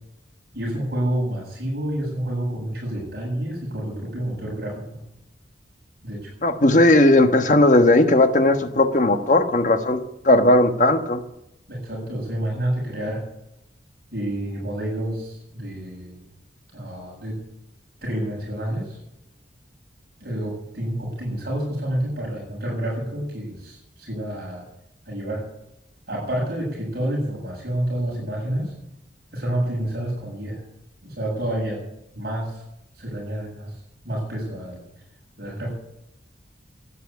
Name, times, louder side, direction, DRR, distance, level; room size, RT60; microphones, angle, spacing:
voice 1, 0.5-5.0 6.0-6.3 11.7-13.2 14.1-16.2 16.7-17.4 18.0-19.0 20.2-24.6 25.1-25.4 26.1-28.7 29.3-30.6 31.0-31.8 32.1-32.6 33.0-33.8 34.0-34.8 35.4-35.7, right 1 dB, 55° right, -3 dB, 7.6 m, -28 dB
voice 2, 6.4-11.2, left 1 dB, 40° left, 8 dB, 1.4 m, -17 dB
13.0 x 10.0 x 9.6 m, 0.86 s
head